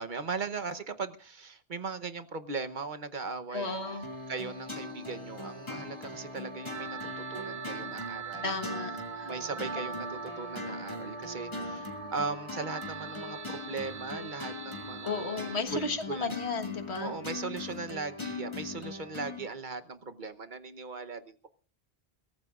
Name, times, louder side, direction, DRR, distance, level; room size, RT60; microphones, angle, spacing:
voice 1, 0.0-4.0 4.3-8.6 9.2-16.3 17.0-21.5, right 4 dB, 50° right, 9 dB, 1.0 m, -38 dB
voice 2, 3.5-4.1 8.4-9.3 9.6-10.0 15.0-17.2, left 4 dB, 80° left, 6 dB, 1.7 m, -34 dB
sound 1, 3.6-15.6, right 6 dB, 85° right, 1.3 m, -43 dB
sound 2, 4.0-19.5, left 3 dB, 25° left, 2.3 m, -41 dB
22.5 x 17.0 x 2.4 m, 0.35 s
omnidirectional pair, 1.1 m